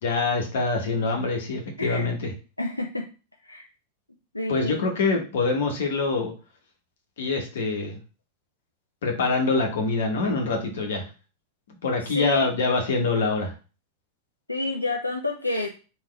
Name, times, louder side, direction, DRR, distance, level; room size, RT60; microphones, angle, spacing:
voice 1, 0.0-2.3 4.5-6.3 7.2-8.0 9.0-11.0 11.8-13.5, left 3 dB, 60° left, 2 dB, 1.1 m, -25 dB
voice 2, 2.6-3.0 3.4-3.7 4.3-4.9 12.1-12.5 14.5-15.7, left 2 dB, 85° left, 1 dB, 0.5 m, -28 dB
3.7 x 3.0 x 3.2 m, 0.34 s
figure-of-eight pair, 90°, 0 cm